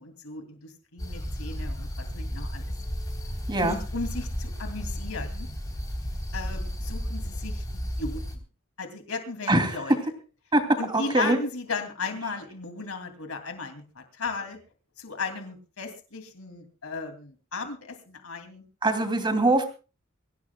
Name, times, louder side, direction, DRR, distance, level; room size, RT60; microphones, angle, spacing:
voice 1, 0.0-2.7 3.6-5.5 6.3-7.6 8.0-8.2 8.8-10.0 10.8-14.6 15.0-18.6, left 4 dB, 75° left, 6 dB, 2.7 m, -35 dB
sound 1, 1.0-8.4, equal, 20° left, 3.5 m, -33 dB
voice 2, 3.5-3.8 9.5-9.8 10.5-10.6 10.9-11.4 18.8-19.6, right 2 dB, 20° right, 6 dB, 2.8 m, -23 dB
24.5 x 16.5 x 2.3 m, 0.33 s
head